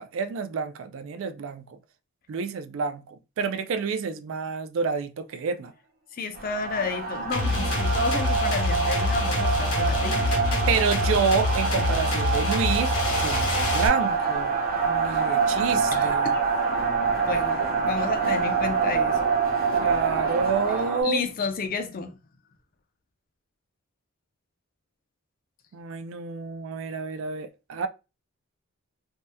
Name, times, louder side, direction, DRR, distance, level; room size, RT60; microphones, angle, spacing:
voice 1, 0.0-1.7 2.3-5.7 10.7-14.6 14.8-16.3 19.8-21.2 25.7-27.9, right 5 dB, 60° right, 0.3 m, -28 dB
voice 2, 6.1-10.3 15.9-16.4 17.3-19.2 21.0-22.2, left 5 dB, 40° left, 0.4 m, -31 dB
sound 1, 6.4-21.0, right 5 dB, 40° right, 0.8 m, -26 dB
sound 2, 7.3-13.9, left 2 dB, 75° left, 1.0 m, -26 dB
2.7 x 2.1 x 3.3 m
head